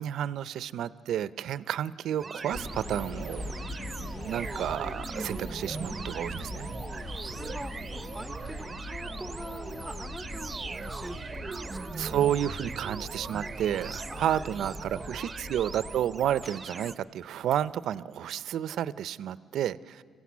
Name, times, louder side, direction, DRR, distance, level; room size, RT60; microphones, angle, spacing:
voice 1, 0.0-3.5 4.2-6.7 12.0-20.0, right 10 dB, 75° right, 18 dB, 0.5 m, -31 dB
sound 1, 2.2-16.9, right 4 dB, 30° right, 0.6 m, -40 dB
sound 2, 2.5-16.0, left 1 dB, 70° left, 2.2 m, -41 dB
voice 2, 6.9-12.0 14.1-15.2, right 1 dB, ahead, 11 dB, 0.8 m, -44 dB
sound 3, 11.0-11.4 12.1-12.7 13.0-15.2 15.6-16.8 17.2-17.8, left 1 dB, 30° left, 5.2 m, -58 dB
26.0 x 15.5 x 8.3 m, 2.3 s
cardioid pair, 90°, 0 cm